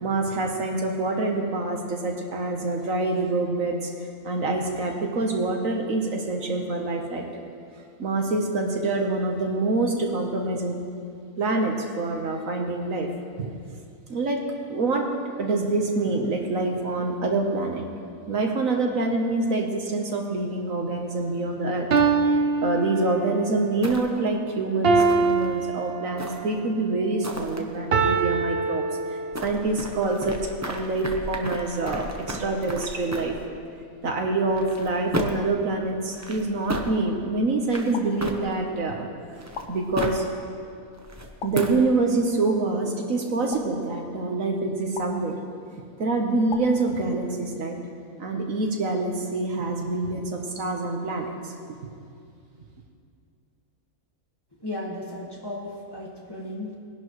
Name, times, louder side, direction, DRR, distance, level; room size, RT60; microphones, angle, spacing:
voice 1, 0.0-3.9 4.2-7.3 8.0-10.8 11.4-13.1 13.4-13.5 14.1-15.1 15.4-17.8 18.3-21.9 22.6-28.8 29.1-33.4 34.0-39.1 39.7-40.2 41.4-45.4 46.0-47.8 48.2-51.5, right 2 dB, 70° right, 2 dB, 1.5 m, -26 dB
sound 1, 21.1-21.3 21.9-23.5 24.8-26.5 27.9-29.5, right 4 dB, 50° right, 0.9 m, -23 dB
sound 2, 23.8-24.3 25.0-25.5 26.2-26.7 27.2-27.6 29.3-33.4 34.5-35.5 36.1-36.9 37.6-38.7 39.3-40.3 40.9-41.9, equal, 15° right, 0.7 m, -34 dB
sound 3, 37.9-38.8 39.5-40.4 41.4-42.2 43.5-44.4 45.0-45.8 46.5-47.5, left 5 dB, 60° left, 1.2 m, -42 dB
voice 2, 54.6-56.8, left 1 dB, 15° left, -4 dB, 1.8 m, -35 dB
20.5 x 11.0 x 3.2 m, 2.3 s
omnidirectional pair, 1.5 m